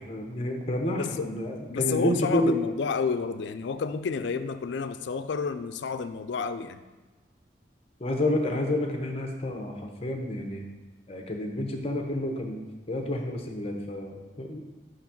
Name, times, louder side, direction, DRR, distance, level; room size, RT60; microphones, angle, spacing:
voice 1, 0.0-2.6 8.0-10.6 11.1-12.6 12.9-14.7, left 1 dB, 30° left, 2 dB, 0.8 m, -29 dB
voice 2, 1.0-1.3 1.7-6.8, left 5 dB, 75° left, 11 dB, 0.4 m, -30 dB
5.4 x 3.9 x 5.8 m, 1.2 s
head